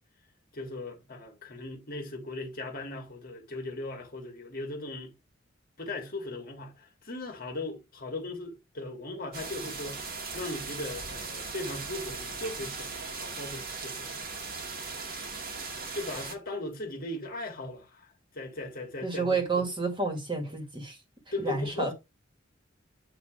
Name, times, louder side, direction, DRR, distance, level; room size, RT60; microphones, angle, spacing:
voice 1, 0.5-5.1 5.8-10.1 10.3-14.1 15.9-19.7 21.3-21.9, left 2 dB, 50° left, 1.9 m, -38 dB
sound 1, 9.3-16.3, right 4 dB, 50° right, 1.5 m, -38 dB
voice 2, 19.0-21.0 21.4-21.9, right 3 dB, 25° right, 1.8 m, -30 dB
8.7 x 2.9 x 5.0 m
head